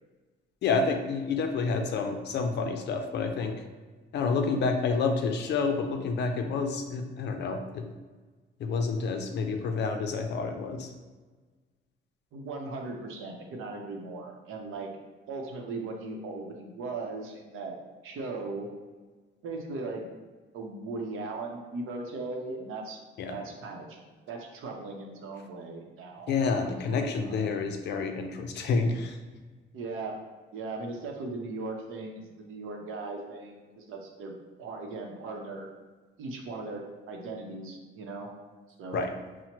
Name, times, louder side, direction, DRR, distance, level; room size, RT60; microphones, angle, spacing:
voice 1, 0.6-3.6 4.1-7.9 8.6-10.9 23.2-23.4 26.3-29.2 38.9-39.1, left 4 dB, 60° left, 5 dB, 0.4 m, -29 dB
voice 2, 12.3-14.9 15.3-17.7 18.0-18.7 19.4-20.1 20.5-23.0 23.3-24.0 24.3-26.3 26.6-27.5 29.7-30.2 30.5-34.3 34.6-35.7 36.2-38.3 38.8-39.1, right 3 dB, 90° right, 1 dB, 0.7 m, -38 dB
5.8 x 2.1 x 2.9 m, 1.3 s
cardioid pair, 175°, 21 cm